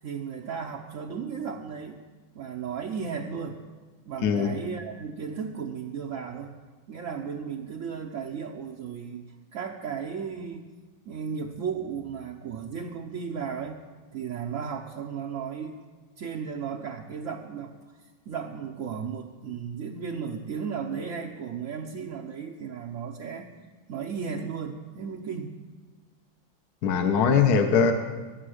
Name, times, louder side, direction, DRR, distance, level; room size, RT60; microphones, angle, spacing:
voice 1, 0.0-2.0 2.3-3.6 4.1-6.6 6.9-9.2 9.5-10.7 11.1-13.8 14.1-15.8 16.2-17.7 18.3-23.5 23.9-25.6, right 6 dB, 60° right, 0 dB, 0.9 m, -35 dB
voice 2, 26.8-27.9, left 6 dB, 60° left, 5 dB, 1.3 m, -21 dB
21.0 x 7.8 x 6.4 m, 1.3 s
omnidirectional pair, 2.2 m